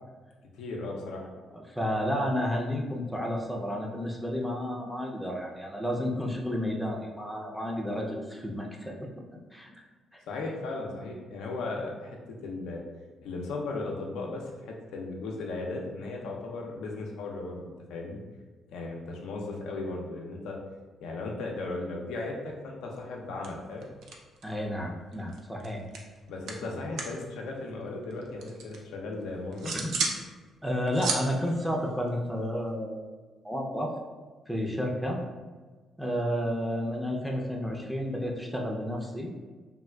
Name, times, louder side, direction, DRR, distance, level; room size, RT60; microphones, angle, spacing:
voice 1, 0.5-1.2 10.3-12.2 12.4-12.8 13.2-18.2 18.7-20.6 21.0-23.9 26.3-29.7, left 2 dB, 90° left, 0 dB, 0.4 m, -36 dB
voice 2, 1.5-9.0 9.5-9.7 10.1-10.2 24.4-25.8 26.8-26.9 29.6-30.1 30.6-33.0 33.4-33.9 34.5-35.2 36.0-39.3, equal, ahead, -1 dB, 0.5 m, -31 dB
sound 1, 23.0-23.2 23.4-24.7 24.9-27.2 27.5-28.8 29.2-30.2 30.6-32.7, right 4 dB, 80° right, 0.4 m, -35 dB
3.4 x 2.3 x 2.2 m, 1.4 s
cardioid pair, 90°, 0 cm